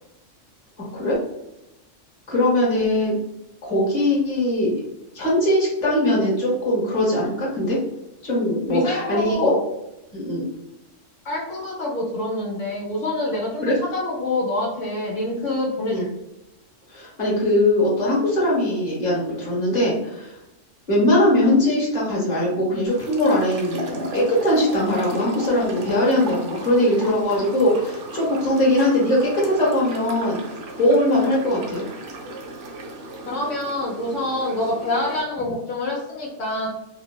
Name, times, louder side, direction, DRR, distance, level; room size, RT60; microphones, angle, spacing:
voice 1, 2.3-3.2 3.6-4.7 5.1-7.8 8.2-9.5 10.1-10.4 13.6-13.7 15.9-16.0 16.9-20.3 20.9-30.4 30.8-31.9, left 1 dB, 35° left, -5 dB, 1.1 m, -21 dB
voice 2, 8.7-9.6 11.2-16.1 33.3-36.7, left 2 dB, 80° left, -2 dB, 1.0 m, -26 dB
sound 1, 22.9-35.2, right 2 dB, 75° right, 0.9 m, -36 dB
3.4 x 2.0 x 2.2 m, 0.91 s
omnidirectional pair, 1.3 m